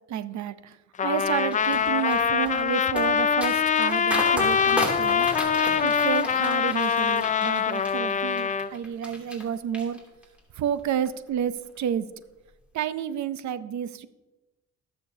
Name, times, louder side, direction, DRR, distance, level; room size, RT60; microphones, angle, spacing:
voice 1, 0.1-5.3 5.8-10.0 10.5-12.1 12.7-14.1, right 9 dB, 70° right, 14 dB, 0.7 m, -30 dB
Trumpet, 1.0-8.7, left 7 dB, 25° left, 0.4 m, -24 dB
sound 1, 1.2-9.4 9.7-10.4 10.8-11.1, equal, 5° right, 2.7 m, -35 dB
20.0 x 6.7 x 2.8 m, 1.1 s
cardioid pair, 90°, 30 cm